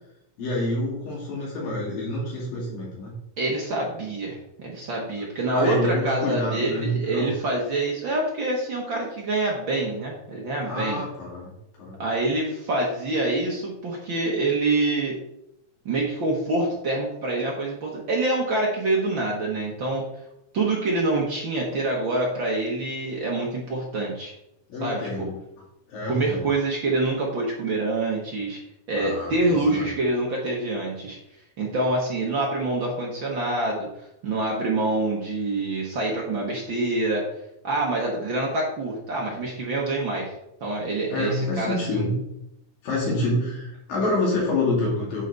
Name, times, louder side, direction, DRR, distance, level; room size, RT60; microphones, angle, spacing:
voice 1, 0.4-3.1 5.5-7.3 10.6-11.5 11.8-12.0 24.7-25.4 25.9-26.5 29.0-29.9 41.1-42.1 42.8-45.3, left 2 dB, 65° left, -4 dB, 4.0 m, -27 dB
voice 2, 3.4-11.0 12.0-15.2 15.8-20.0 20.5-24.3 24.8-25.3 26.1-28.6 28.9-31.2 31.6-37.2 37.6-40.3 40.6-42.1, right 2 dB, 70° right, -2 dB, 1.1 m, -26 dB
10.0 x 5.7 x 4.0 m, 0.83 s
omnidirectional pair, 4.3 m